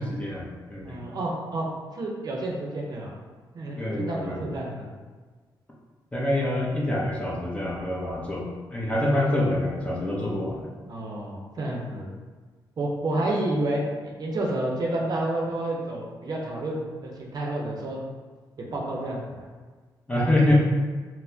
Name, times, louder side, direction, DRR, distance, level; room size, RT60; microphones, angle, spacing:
voice 1, 0.0-1.0 3.8-4.5 6.1-10.7 20.1-20.6, left 1 dB, 15° left, -4 dB, 0.8 m, -26 dB
voice 2, 0.8-1.7 1.9-3.1 3.5-4.9 10.9-12.1 12.8-18.0 18.6-19.5, right 1 dB, 50° right, -2 dB, 0.7 m, -30 dB
4.1 x 2.1 x 2.7 m, 1.4 s
cardioid pair, 95°, 8 cm